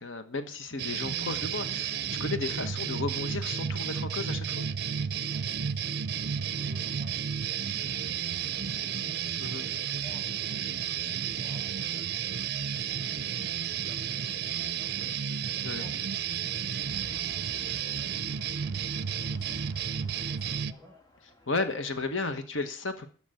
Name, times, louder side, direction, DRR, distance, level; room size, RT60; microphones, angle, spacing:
voice 1, 0.0-4.7 9.4-9.7 15.6-15.8 21.5-23.1, left 3 dB, 85° left, 8 dB, 1.4 m, -34 dB
sound 1, 0.8-20.7, right 8 dB, 55° right, 0.6 m, -32 dB
voice 2, 5.3-9.7 10.0-15.9 16.3-20.9, right 1 dB, ahead, 1 dB, 6.4 m, -54 dB
sound 2, 16.8-22.5, right 1 dB, 20° left, 2.0 m, -51 dB
13.5 x 5.1 x 9.2 m, 0.40 s
head